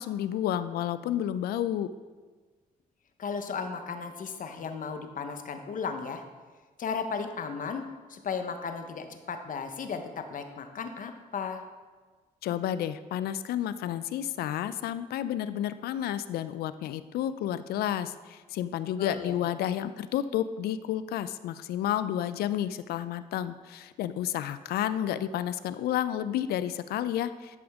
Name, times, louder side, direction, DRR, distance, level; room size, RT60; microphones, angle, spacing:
voice 1, 0.0-1.9 12.4-27.6, left 11 dB, 90° left, 14 dB, 0.4 m, -31 dB
voice 2, 3.2-6.2 6.8-7.8 8.1-11.6 19.0-19.4, left 5 dB, 60° left, 7 dB, 0.9 m, -35 dB
11.5 x 5.1 x 3.5 m, 1.4 s
cardioid pair, 75°, 16 cm